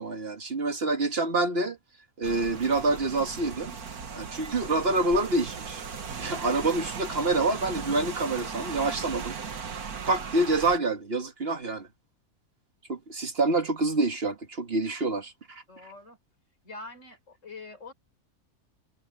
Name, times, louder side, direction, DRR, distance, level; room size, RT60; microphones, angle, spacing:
voice 1, 0.0-1.8 2.2-3.7 4.1-5.8 6.2-9.3 10.1-11.9 12.9-15.6, right 2 dB, 40° right, 1.7 m, -27 dB
Rain, 2.2-10.8, right 6 dB, 75° right, 2.0 m, -37 dB
voice 2, 15.7-16.2 16.6-17.9, left 3 dB, 50° left, 4.4 m, -44 dB
omnidirectional pair, 1.6 m